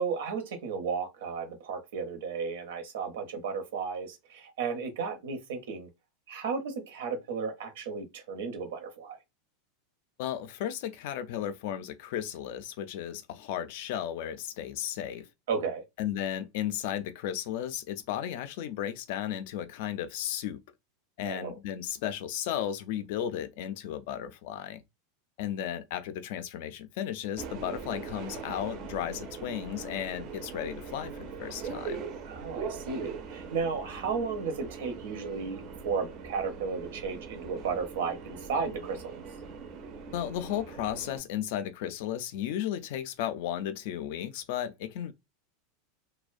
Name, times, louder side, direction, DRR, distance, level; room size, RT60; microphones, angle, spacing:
voice 1, 0.0-5.9 6.3-9.2 15.5-15.8 21.2-21.6 32.2-39.0, right 5 dB, 80° right, 0.7 m, -34 dB
voice 2, 10.2-15.3 16.0-20.6 21.2-24.8 25.4-32.0 40.1-45.1, left 10 dB, 50° left, 0.3 m, -34 dB
Subway metro underground, 27.4-41.2, right 5 dB, 35° right, 0.4 m, -41 dB
2.4 x 2.1 x 2.5 m
supercardioid pair, 170°, 0 cm